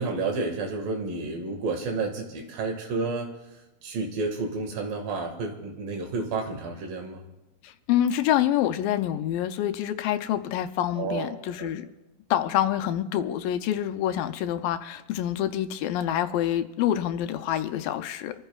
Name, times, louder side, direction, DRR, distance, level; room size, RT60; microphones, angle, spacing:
voice 1, 0.0-3.3 3.8-7.2 11.0-11.7, right 3 dB, 85° right, 3 dB, 3.7 m, -30 dB
voice 2, 7.6-11.9 12.3-18.3, left 11 dB, 85° left, 9 dB, 2.4 m, -26 dB
26.5 x 14.5 x 2.4 m, 0.98 s
omnidirectional pair, 4.0 m